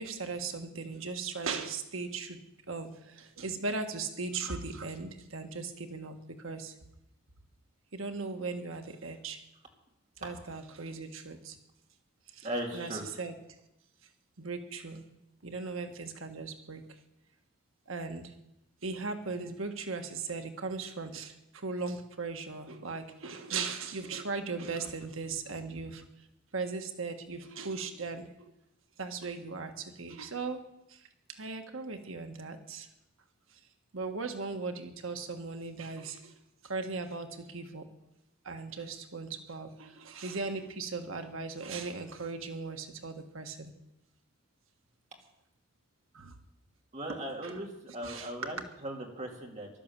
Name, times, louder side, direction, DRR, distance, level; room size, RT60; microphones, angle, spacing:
voice 1, 0.0-2.4 2.7-6.7 7.9-9.4 10.2-11.6 12.3-13.3 14.4-15.0 15.4-17.0 17.9-18.3 18.8-26.0 26.5-28.5 29.0-30.6 30.9-32.9 33.5-33.6 33.9-36.3 36.6-37.9 38.4-43.7 46.1-46.3 47.4-47.6 48.0-48.3, right 4 dB, 80° right, 6 dB, 1.4 m, -38 dB
voice 2, 12.4-13.0 46.9-49.7, right 1 dB, 35° right, 0 dB, 2.9 m, -38 dB
15.0 x 12.0 x 7.5 m, 0.87 s
head